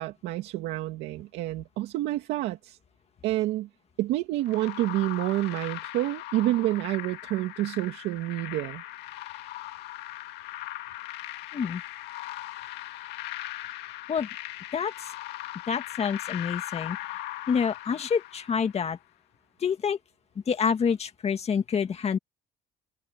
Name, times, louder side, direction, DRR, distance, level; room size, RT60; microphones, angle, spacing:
voice 1, 0.0-2.8 3.2-3.7 4.0-8.8, right 16 dB, 90° right, 2.3 m, -28 dB
sound 1, 4.5-18.8, left 15 dB, 90° left, 2.1 m, -39 dB
voice 2, 14.7-15.1 15.7-17.0 17.5-19.0 19.6-20.0 20.5-22.2, left 6 dB, 40° left, 2.0 m, -27 dB
open air
cardioid pair, 110°, 17 cm